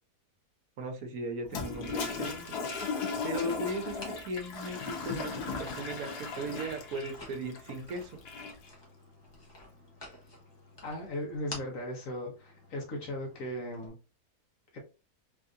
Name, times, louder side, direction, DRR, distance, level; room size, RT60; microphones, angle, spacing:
voice 1, 0.8-2.6 3.2-8.2, right 1 dB, 70° right, 5 dB, 1.1 m, -37 dB
Toilet flush, 1.4-8.7, left 4 dB, 90° left, 1.4 m, -37 dB
sound 1, 1.4-13.9, left 1 dB, 20° left, 0.8 m, -52 dB
voice 2, 10.8-14.0 14.7-14.8, left 1 dB, 60° left, 1 dB, 1.3 m, -37 dB
3.4 x 2.7 x 2.4 m, 0.32 s
omnidirectional pair, 1.7 m